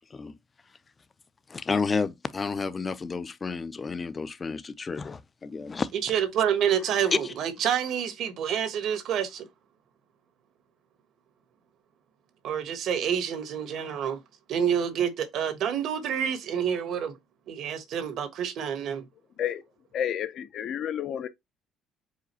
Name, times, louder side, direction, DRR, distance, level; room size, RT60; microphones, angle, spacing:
voice 1, 1.5-5.9 6.9-7.3, left 4 dB, 30° left, 0.5 m, -31 dB
voice 2, 6.0-9.5 12.4-14.2 14.5-17.1 17.5-19.1, right 8 dB, 70° right, 1.1 m, -28 dB
voice 3, 19.9-21.3, left 9 dB, 65° left, 0.7 m, -30 dB
4.9 x 2.3 x 4.2 m
cardioid pair, 90°, 0 cm